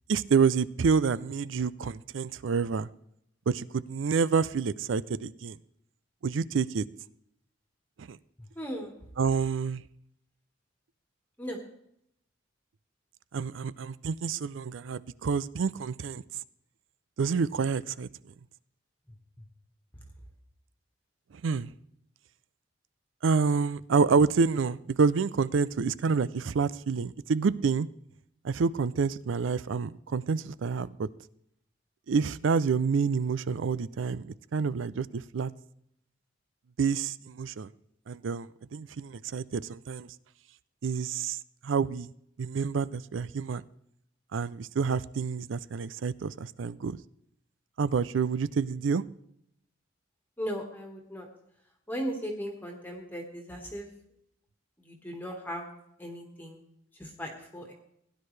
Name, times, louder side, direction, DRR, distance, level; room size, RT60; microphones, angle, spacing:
voice 1, 0.1-2.9 3.5-5.6 6.2-6.8 8.0-8.2 9.2-9.8 13.3-16.2 17.2-18.1 21.4-21.7 23.2-27.9 28.4-31.1 32.1-35.5 36.8-37.7 38.1-40.1 40.8-41.4 41.6-42.1 42.4-43.6 44.3-47.0 47.8-49.0, right 5 dB, 80° right, 19 dB, 0.4 m, -28 dB
voice 2, 8.5-8.9 11.4-11.6 50.4-51.3 51.9-53.9 54.8-55.7 56.0-56.6 57.0-57.7, equal, 10° left, 1 dB, 1.6 m, -37 dB
17.0 x 10.5 x 3.3 m, 0.74 s
head